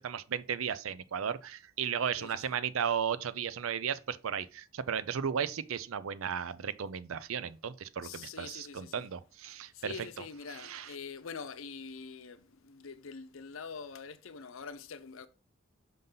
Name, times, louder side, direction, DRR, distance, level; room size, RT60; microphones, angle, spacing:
voice 1, 0.0-10.1 10.6-10.9, right 7 dB, 90° right, 0.5 m, -35 dB
voice 2, 2.2-2.6 8.0-9.1 9.7-15.3, left 5 dB, 85° left, 0.7 m, -45 dB
5.5 x 5.4 x 3.8 m
head